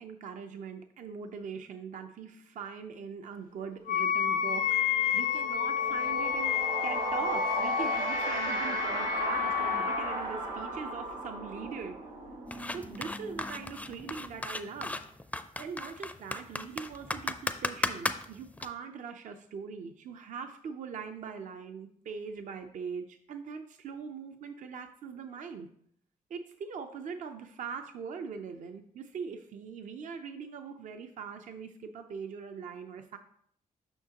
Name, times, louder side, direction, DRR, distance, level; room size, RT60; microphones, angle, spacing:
voice 1, 0.0-6.5 6.8-12.0 12.7-15.0 15.6-25.7 26.3-33.2, right 6 dB, 65° right, 6 dB, 0.5 m, -41 dB
sound 1, 3.8-4.0 4.2-14.8, right 2 dB, 85° right, 1.9 m, -37 dB
Wind instrument woodwind instrument, 3.9-10.2, left 8 dB, 85° left, 0.4 m, -30 dB
sound 2, 12.5-18.7, left 2 dB, 10° left, 0.4 m, -35 dB
7.0 x 5.7 x 2.9 m, 0.66 s
cardioid pair, 95°, 14 cm